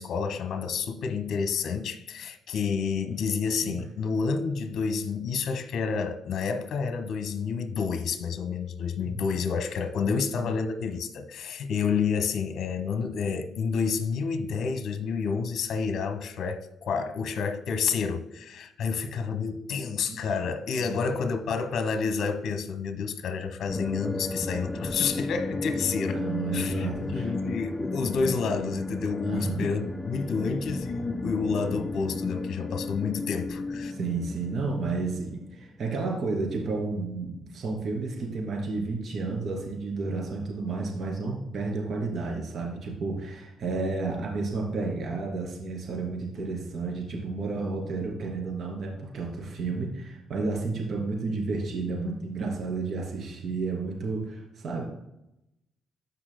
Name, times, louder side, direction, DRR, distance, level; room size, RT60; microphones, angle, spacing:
voice 1, 0.0-26.2 26.5-33.9, left 5 dB, 70° left, 1.1 m, -29 dB
voice 2, 10.0-10.5 20.1-20.2 20.8-21.0 25.8-27.3 29.2-29.7 33.9-54.8, right 3 dB, 60° right, 2.6 m, -32 dB
sound 1, 23.7-35.7, left 2 dB, 15° left, 0.5 m, -34 dB
14.0 x 5.5 x 2.2 m
cardioid pair, 90°, 0 cm